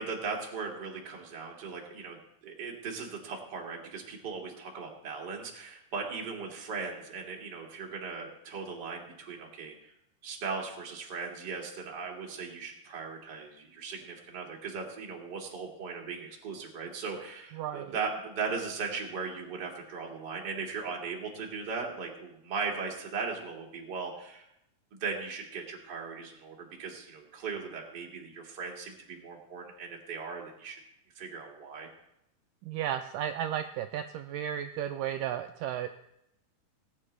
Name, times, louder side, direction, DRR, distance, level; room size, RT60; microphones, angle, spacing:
voice 1, 0.0-2.2 2.4-9.7 10.2-24.5 24.9-30.8 31.2-31.9, right 5 dB, 35° right, -1 dB, 2.1 m, -38 dB
voice 2, 17.6-18.0 32.6-35.9, right 10 dB, 85° right, 7 dB, 1.9 m, -34 dB
19.5 x 9.4 x 3.3 m, 0.81 s
omnidirectional pair, 4.3 m